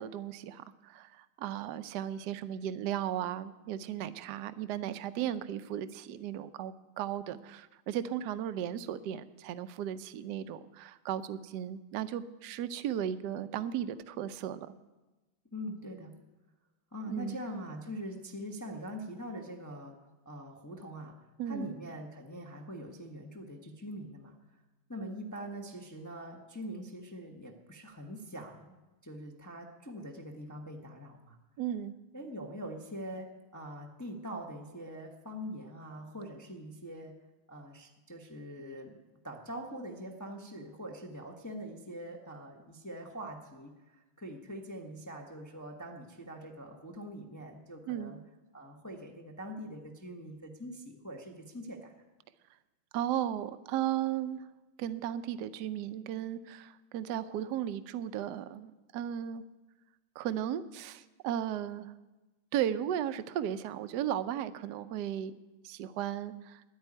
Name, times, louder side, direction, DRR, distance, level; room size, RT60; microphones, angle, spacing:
voice 1, 0.0-14.7 17.1-17.4 21.4-21.7 31.6-31.9 47.9-48.1 52.9-54.5 54.8-59.4 60.2-61.9 62.5-65.3 65.6-66.6, right 10 dB, 70° right, 13 dB, 1.1 m, -35 dB
voice 2, 15.5-16.1 16.9-20.0 20.2-24.3 24.9-28.7 29.0-31.4 32.1-37.1 37.5-48.2 48.5-51.9, equal, 15° left, 2 dB, 0.6 m, -43 dB
10.5 x 9.0 x 9.8 m, 1.1 s
omnidirectional pair, 2.2 m